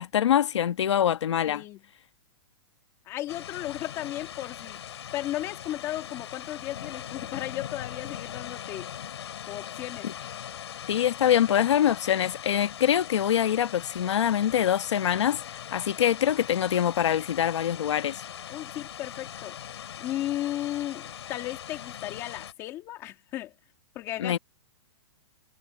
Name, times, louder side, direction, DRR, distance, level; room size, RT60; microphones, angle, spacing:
voice 1, 0.0-1.6 10.0-10.1 10.9-15.4 15.7-18.2 24.2-24.4, left 10 dB, 90° left, 1.4 m, -24 dB
voice 2, 1.4-1.8 3.0-4.8 5.1-8.9 9.5-10.1 18.5-19.6 20.0-23.5 23.9-24.4, left 14 dB, 20° left, 1.8 m, -35 dB
sound 1, 3.3-22.5, left 10 dB, 70° left, 4.7 m, -41 dB
hypercardioid pair, 180°, 15 cm